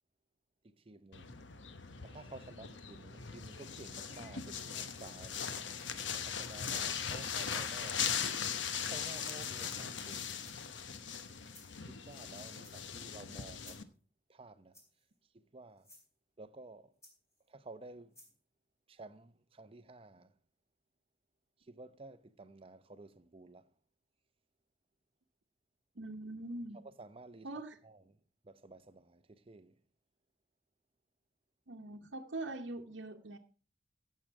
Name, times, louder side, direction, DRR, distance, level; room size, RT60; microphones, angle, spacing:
voice 1, 0.6-1.4 2.0-5.5 6.1-8.1 8.9-10.4 11.8-13.8 14.3-14.8 15.3-15.9 16.4-16.9 17.5-18.2 18.9-20.3 21.6-23.7 26.8-28.2 28.4-29.8, right 2 dB, 30° right, 0.6 m, -53 dB
sound 1, 1.1-13.8, left 7 dB, 80° left, 1.0 m, -39 dB
sound 2, 9.4-9.8 10.4-10.8 11.5-11.7 12.6-13.1 13.6-14.0 14.7-15.1 15.8-16.1 17.0-17.5 18.1-18.4, left 1 dB, 15° left, 4.0 m, -60 dB
voice 2, 26.0-26.8 27.4-27.8 31.7-33.4, right 2 dB, 80° right, 0.9 m, -42 dB
16.5 x 6.5 x 4.7 m
head